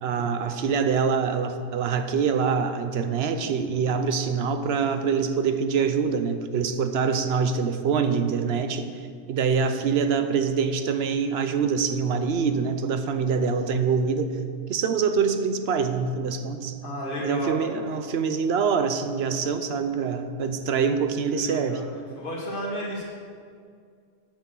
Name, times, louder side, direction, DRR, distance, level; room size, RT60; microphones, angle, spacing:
voice 1, 0.0-8.9 9.3-14.4 14.7-16.8 17.2-21.8, right 6 dB, 70° right, 9 dB, 1.0 m, -25 dB
voice 2, 16.8-17.6 21.3-21.9 22.2-23.0, equal, 55° left, -5 dB, 2.3 m, -33 dB
8.5 x 8.3 x 6.2 m, 2.2 s
omnidirectional pair, 1.1 m